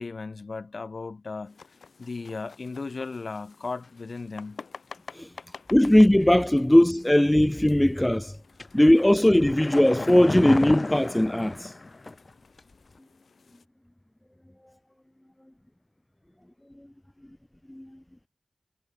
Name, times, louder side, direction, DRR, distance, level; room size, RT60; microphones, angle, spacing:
voice 1, 0.0-1.6 2.0-4.6, left 4 dB, 65° left, 1.2 m, -36 dB
sound 1, 1.4-13.7, left 5 dB, 85° left, 2.7 m, -51 dB
voice 2, 5.7-8.3 8.7-11.7 17.8-17.9, left 1 dB, 15° left, 0.5 m, -19 dB
sound 2, 8.6-12.3 12.6-12.7, left 2 dB, 45° left, 1.6 m, -32 dB
wide cardioid pair, 60°, 0 cm